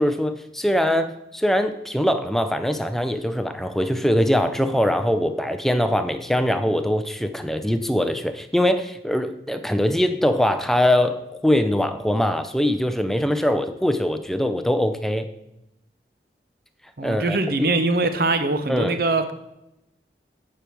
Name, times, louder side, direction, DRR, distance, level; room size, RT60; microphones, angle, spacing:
voice 1, 0.0-15.3 17.0-17.7 18.7-19.0, equal, ahead, 8 dB, 0.4 m, -22 dB
voice 2, 17.0-19.3, right 2 dB, 55° right, 10 dB, 0.7 m, -22 dB
8.6 x 4.8 x 6.0 m, 0.88 s
head